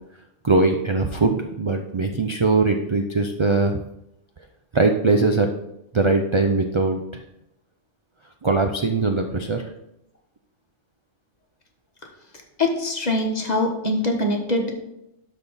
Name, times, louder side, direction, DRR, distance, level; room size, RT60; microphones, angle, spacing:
voice 1, 0.4-3.8 4.7-5.5 5.9-7.2 8.4-9.6, right 3 dB, 50° right, 5 dB, 0.3 m, -21 dB
voice 2, 12.6-14.7, left 1 dB, 35° left, 1 dB, 1.3 m, -23 dB
12.0 x 4.2 x 4.1 m, 0.85 s
omnidirectional pair, 1.3 m